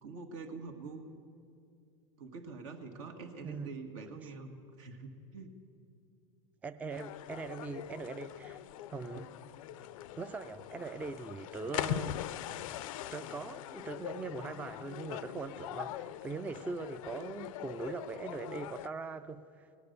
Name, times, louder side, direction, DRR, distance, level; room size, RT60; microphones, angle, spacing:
voice 1, 0.0-1.0 2.2-5.5 9.2-9.3, right 4 dB, 75° right, 1.7 m, -45 dB
voice 2, 3.4-3.8 4.2-4.3 6.6-8.6 8.9-9.2 10.2-12.2 13.1-19.7, right 4 dB, 10° right, 0.3 m, -41 dB
sound 1, 6.9-18.9, left 13 dB, 85° left, 0.4 m, -42 dB
18.5 x 9.9 x 6.6 m
supercardioid pair, 130°, 17 cm